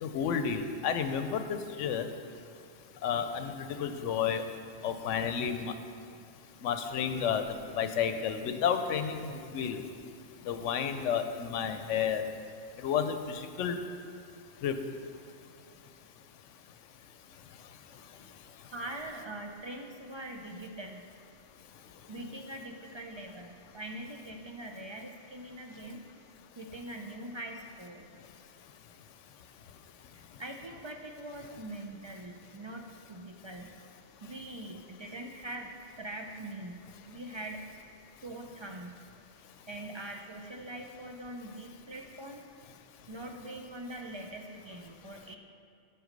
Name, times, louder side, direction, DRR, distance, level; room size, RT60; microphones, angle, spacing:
voice 1, 0.0-2.0 3.0-4.4 4.8-5.7 6.6-9.8 10.5-12.2 12.8-13.8 14.6-14.7, left 7 dB, 90° left, 8 dB, 1.0 m, -31 dB
voice 2, 18.7-21.0 22.1-26.0 26.6-28.1 30.1-33.7 34.2-37.6 38.2-39.0 39.7-42.5 43.1-45.4, right 1 dB, 50° right, 2 dB, 0.3 m, -43 dB
7.9 x 6.9 x 5.2 m, 2.4 s
omnidirectional pair, 1.2 m